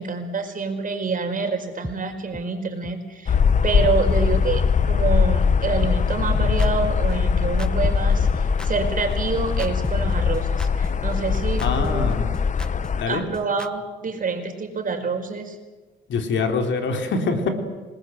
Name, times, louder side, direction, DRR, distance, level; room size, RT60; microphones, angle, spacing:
voice 1, 0.0-3.4 3.6-12.1 13.1-15.6, right 4 dB, 45° right, 6 dB, 4.8 m, -27 dB
sound 1, 1.8-1.9 2.3-2.4 2.8-2.9 3.3-3.4 3.8-4.0 4.3-4.4 4.8-4.9 5.3-5.4 5.8-13.7, left 1 dB, 5° left, 1.0 m, -35 dB
sound 2, 3.3-13.0, left 6 dB, 40° left, 0.9 m, -21 dB
voice 2, 11.6-12.3 13.0-13.2 16.1-17.5, left 4 dB, 70° left, 5 dB, 4.0 m, -24 dB
27.5 x 20.0 x 7.9 m, 1.3 s
cardioid pair, 90°, 20 cm